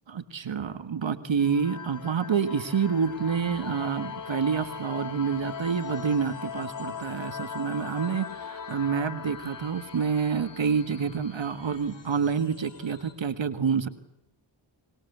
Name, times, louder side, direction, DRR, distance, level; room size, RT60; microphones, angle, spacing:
voice 1, 0.1-13.9, right 6 dB, 65° right, 11 dB, 1.7 m, -28 dB
sound 1, 1.4-11.7, left 6 dB, 40° left, 1.0 m, -39 dB
sound 2, 2.5-13.1, left 4 dB, 60° left, 5.2 m, -53 dB
25.0 x 21.0 x 8.1 m, 0.85 s
cardioid pair, 65°, 49 cm